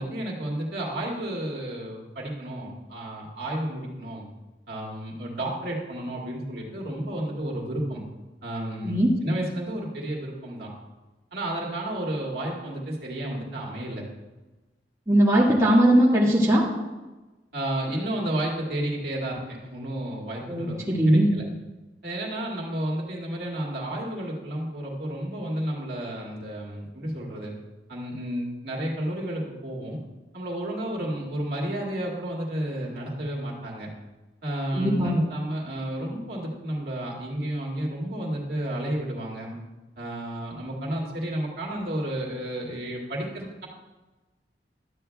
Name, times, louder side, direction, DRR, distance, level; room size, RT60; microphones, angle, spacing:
voice 1, 0.0-4.3 4.7-8.0 8.4-9.0 9.2-10.7 11.3-14.0 17.5-21.4 22.0-27.5 27.9-30.0 30.3-33.9 34.4-39.5 40.0-43.7, right 1 dB, 60° right, -3 dB, 2.1 m, -32 dB
voice 2, 15.1-16.7 20.5-21.3 34.7-35.2, right 1 dB, 20° right, -6 dB, 1.6 m, -19 dB
12.5 x 8.7 x 2.3 m, 1.1 s
head